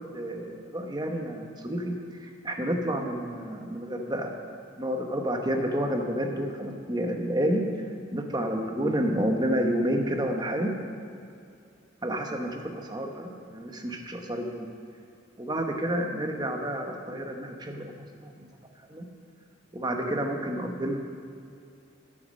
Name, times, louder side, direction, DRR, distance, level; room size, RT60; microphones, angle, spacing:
voice 1, 0.0-1.9 2.2-4.3 4.8-7.6 8.1-10.7 12.0-14.7 15.4-17.9 18.2-18.3 18.9-19.0 19.7-21.0, equal, 20° right, 3 dB, 1.0 m, -29 dB
9.8 x 9.4 x 6.3 m, 2.5 s
head